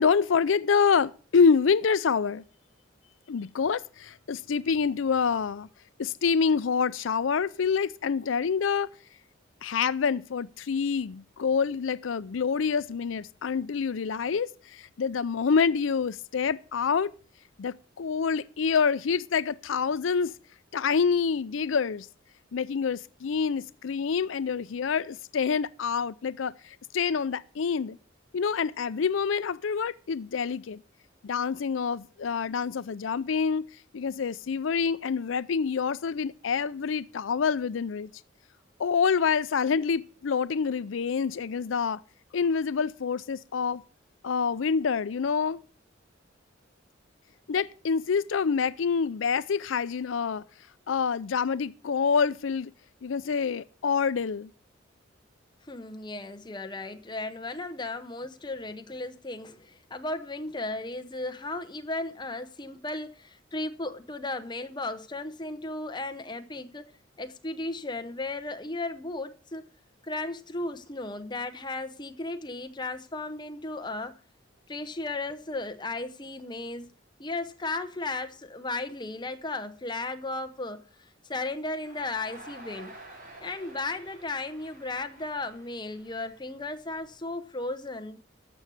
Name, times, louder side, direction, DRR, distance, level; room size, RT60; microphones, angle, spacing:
voice 1, 0.0-2.4 3.3-5.7 6.0-8.9 9.6-17.1 17.6-20.3 20.7-22.1 22.5-28.0 28.3-30.8 31.2-33.6 33.9-38.1 38.8-42.0 42.3-43.8 44.2-45.6 47.5-50.4 50.9-52.7 53.0-54.5, left 6 dB, 85° left, 0.5 m, -27 dB
voice 2, 55.7-66.9 67.2-69.6 70.0-74.2 74.7-76.9 77.2-80.8 81.3-83.0 83.4-88.2, left 2 dB, 25° left, 0.9 m, -35 dB
Crowd, 81.8-87.0, right 1 dB, 45° right, 4.0 m, -49 dB
14.0 x 6.3 x 6.9 m
head